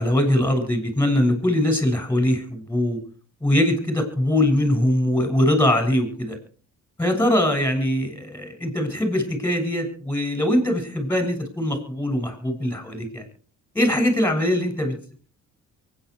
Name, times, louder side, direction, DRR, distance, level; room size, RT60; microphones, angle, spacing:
voice 1, 0.0-3.0 3.4-6.4 7.0-13.2 13.7-15.0, left 1 dB, 5° left, 7 dB, 7.3 m, -22 dB
24.0 x 10.0 x 4.9 m, 0.41 s
cardioid pair, 90°, 30 cm